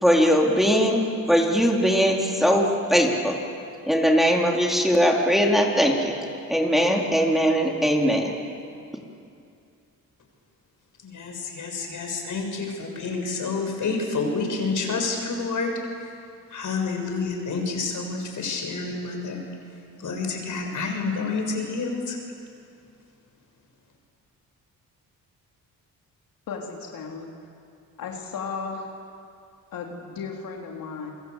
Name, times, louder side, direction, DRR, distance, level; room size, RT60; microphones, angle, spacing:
voice 1, 0.0-3.4 3.9-6.2 6.5-8.3, equal, ahead, -1 dB, 4.0 m, -20 dB
voice 2, 11.0-15.7 16.0-16.2 16.5-22.2, left 4 dB, 65° left, 3 dB, 6.9 m, -29 dB
voice 3, 26.5-27.3 28.0-28.9 29.7-31.1, left 5 dB, 85° left, 0 dB, 3.6 m, -35 dB
29.0 x 23.0 x 8.4 m, 2.5 s
cardioid pair, 90°, 33 cm